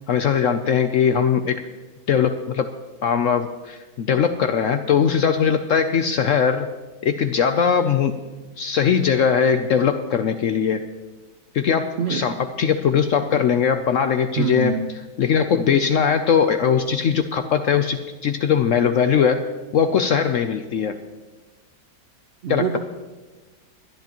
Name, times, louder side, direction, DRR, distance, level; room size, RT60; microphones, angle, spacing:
voice 1, 0.1-1.6 2.1-2.7 3.0-6.7 7.0-8.1 8.6-10.8 11.5-14.8 15.2-21.0 22.5-22.8, left 7 dB, 70° left, 8 dB, 0.8 m, -20 dB
voice 2, 14.4-14.9 22.4-22.8, right 7 dB, 60° right, 5 dB, 0.7 m, -24 dB
23.5 x 10.5 x 3.0 m, 1.2 s
omnidirectional pair, 1.8 m